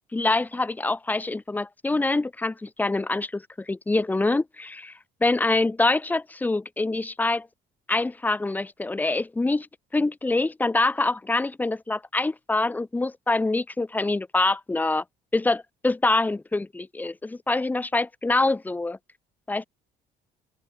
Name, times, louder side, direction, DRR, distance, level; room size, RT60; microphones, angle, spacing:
voice 1, 0.1-4.9 5.2-7.5 7.9-9.7 9.9-15.0 15.3-19.0 19.5-19.6, left 2 dB, 10° left, 0.5 m, -25 dB
open air
cardioid pair, 110°, 17 cm